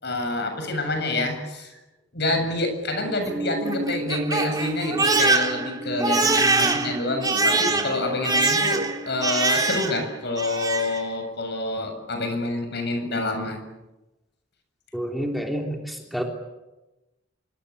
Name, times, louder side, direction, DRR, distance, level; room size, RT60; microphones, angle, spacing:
voice 1, 0.0-1.8 2.1-13.6, left 2 dB, 60° left, 6 dB, 7.3 m, -27 dB
Crying sobbing, 3.1-10.1 10.4-11.0, right 3 dB, 20° right, 3.3 m, -24 dB
voice 2, 14.9-16.2, equal, ahead, 1 dB, 3.4 m, -29 dB
26.5 x 25.0 x 8.4 m, 1.0 s
head